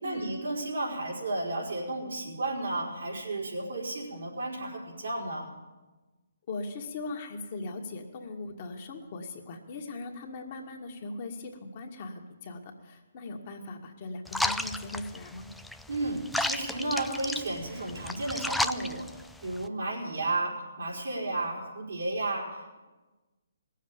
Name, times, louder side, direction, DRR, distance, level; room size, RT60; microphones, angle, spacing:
voice 1, 0.0-5.5 15.9-19.1 19.4-22.8, right 2 dB, 75° right, -2 dB, 4.4 m, -33 dB
voice 2, 6.5-15.5, left 3 dB, 45° left, 2 dB, 1.8 m, -39 dB
sound 1, 14.3-19.7, left 1 dB, ahead, 0.4 m, -33 dB
19.0 x 7.5 x 8.8 m, 1.2 s
hypercardioid pair, 140°, 0 cm